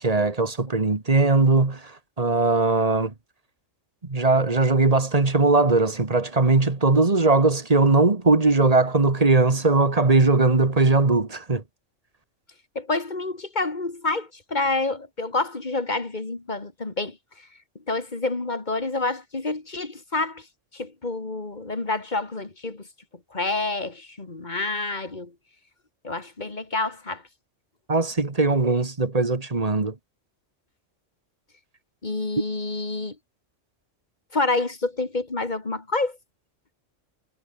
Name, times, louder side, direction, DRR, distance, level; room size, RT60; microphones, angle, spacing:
voice 1, 0.0-1.8 2.2-3.1 4.0-11.6 27.9-29.9, right 3 dB, 30° right, 1.7 m, -20 dB
voice 2, 12.7-17.5 17.9-20.5 20.7-22.9 23.3-25.3 26.0-27.2 32.0-33.2 34.3-36.2, left 3 dB, 35° left, 2.5 m, -28 dB
omnidirectional pair, 1.3 m